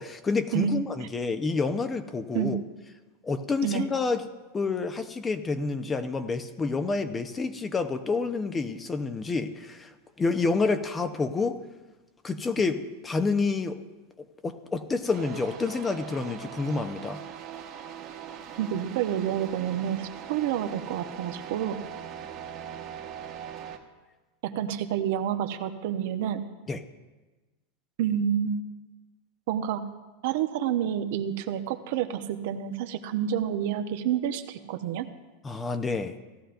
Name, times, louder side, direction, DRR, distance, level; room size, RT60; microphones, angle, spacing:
voice 1, 0.0-2.6 3.2-4.3 4.5-9.9 10.2-11.6 12.2-13.8 14.4-17.2 26.7-26.8 35.4-36.1, left 4 dB, 20° left, 9 dB, 0.8 m, -28 dB
sound 1, 15.1-23.8, right 9 dB, 45° right, 1.3 m, -41 dB
voice 2, 18.6-21.8 24.4-26.4 28.0-28.6 29.5-29.8 30.2-35.1, right 10 dB, 65° right, 7 dB, 0.8 m, -29 dB
17.0 x 12.5 x 2.6 m, 1.2 s
hypercardioid pair, 115°, 0 cm